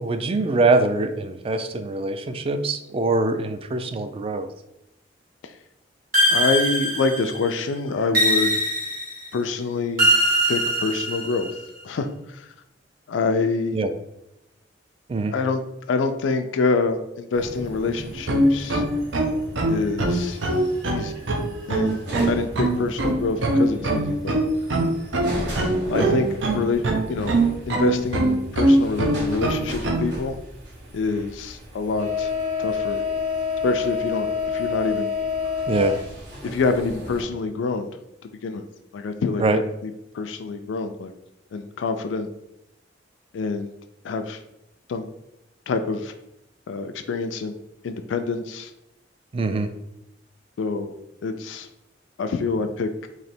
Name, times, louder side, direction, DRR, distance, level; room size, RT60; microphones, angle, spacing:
voice 1, 0.0-4.5 13.7-13.9 15.1-15.3 35.7-36.0 39.4-39.6 49.3-49.7, right 2 dB, 30° right, 9 dB, 0.3 m, -23 dB
sound 1, 6.1-7.5 8.1-9.3 10.0-11.5, equal, 50° right, 1.3 m, -21 dB
voice 2, 6.3-8.6 9.3-10.1 10.5-11.5 11.8-12.5 13.1-13.8 15.3-15.6 15.9-18.8 19.7-20.4 20.8-21.1 21.7-22.0 22.2-24.4 25.9-26.3 26.5-26.8 27.1-27.3 27.7-30.4 30.9-32.3 32.6-33.0 33.6-35.1 36.4-37.9 38.4-38.6 38.9-41.1 41.5-42.3 43.3-43.7 44.0-44.4 44.9-45.1 45.7-46.1 46.7-47.6 47.8-48.7 50.6-50.9 51.2-51.7 52.2-53.1, left 4 dB, 90° left, 7 dB, 0.4 m, -26 dB
sound 2, 17.3-37.2, left 4 dB, 75° right, 1.2 m, -32 dB
sound 3, 18.2-30.1, right 1 dB, 90° right, 0.6 m, -22 dB
3.2 x 2.8 x 4.2 m, 0.86 s
head